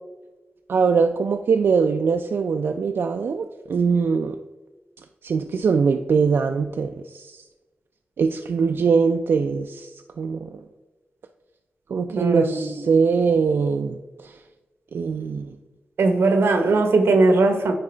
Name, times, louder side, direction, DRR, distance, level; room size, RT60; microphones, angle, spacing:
voice 1, 0.7-4.4 5.2-7.4 8.2-9.9 10.2-10.5 11.9-14.3 14.9-15.5, right 5 dB, 70° right, 5 dB, 0.3 m, -22 dB
voice 2, 12.1-12.9 16.0-17.7, right 3 dB, 90° right, 6 dB, 0.9 m, -19 dB
9.9 x 3.6 x 3.3 m, 1.2 s
cardioid pair, 75°, 4 cm